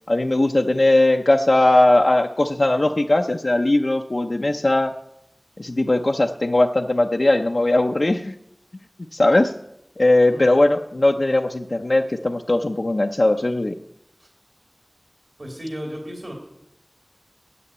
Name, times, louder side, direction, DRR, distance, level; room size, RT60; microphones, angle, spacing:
voice 1, 0.1-4.9 5.6-8.3 9.1-9.5 10.0-13.7, left 2 dB, 70° left, 2 dB, 0.6 m, -19 dB
voice 2, 15.4-16.3, equal, 65° right, 0 dB, 2.7 m, -34 dB
9.8 x 8.4 x 8.6 m, 0.81 s
wide cardioid pair, 40°, 0 cm